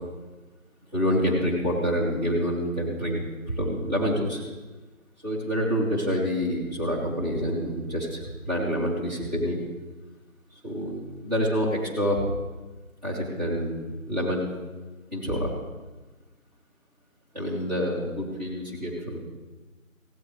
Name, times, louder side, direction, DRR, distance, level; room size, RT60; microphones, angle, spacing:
voice 1, 0.9-4.4 5.2-9.6 10.6-12.2 13.0-14.5 15.1-15.5 17.3-19.2, equal, 30° right, -7 dB, 4.2 m, -27 dB
20.0 x 16.5 x 3.5 m, 1.2 s
figure-of-eight pair, 180°, 42 cm